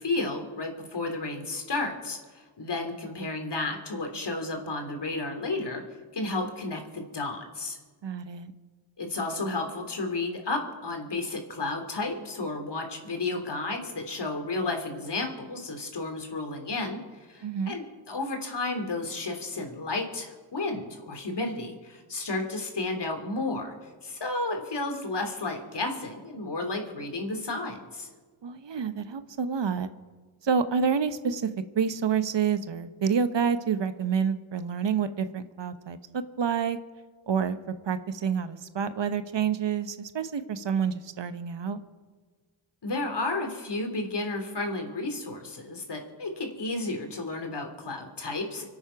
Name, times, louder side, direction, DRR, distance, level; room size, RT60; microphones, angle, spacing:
voice 1, 0.0-5.8 6.1-7.8 9.0-23.7 24.0-28.1 42.8-48.6, left 2 dB, 55° left, 4 dB, 3.3 m, -32 dB
voice 2, 8.0-8.5 17.4-17.8 28.4-29.9 30.4-31.5 31.7-36.8 37.3-37.6 37.8-41.8, right 6 dB, 60° right, 11 dB, 1.1 m, -28 dB
25.5 x 8.7 x 5.9 m, 1.4 s
cardioid pair, 55°, 49 cm